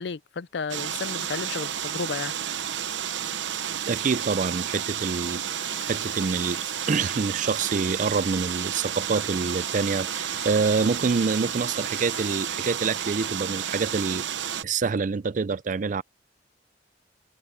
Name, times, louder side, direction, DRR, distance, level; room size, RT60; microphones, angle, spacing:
voice 1, 0.0-2.3, left 5 dB, 65° left, 0.5 m, -33 dB
sound 1, 0.7-14.6, right 9 dB, 85° right, 0.9 m, -31 dB
voice 2, 3.9-14.3 14.6-16.0, right 4 dB, 45° right, 0.4 m, -26 dB
sound 2, 5.6-12.5, left 8 dB, 90° left, 7.2 m, -47 dB
head